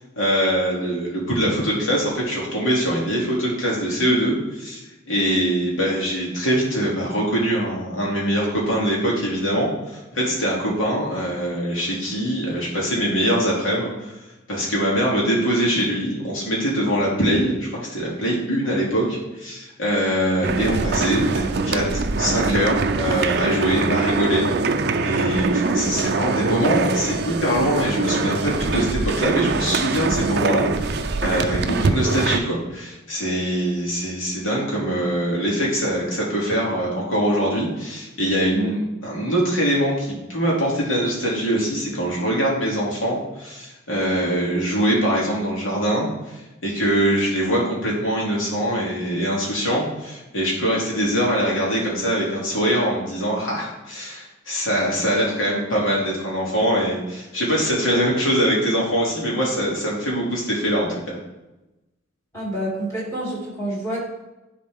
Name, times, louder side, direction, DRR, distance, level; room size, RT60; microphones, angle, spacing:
voice 1, 0.2-9.7 10.1-14.1 14.5-24.5 25.0-46.1 46.6-61.2, equal, 80° left, -4 dB, 2.6 m, -23 dB
sound 1, 20.4-32.4, right 3 dB, 50° right, 0.4 m, -23 dB
voice 2, 62.3-64.0, right 1 dB, 15° left, -6 dB, 2.8 m, -28 dB
10.5 x 4.2 x 3.6 m, 1.0 s
head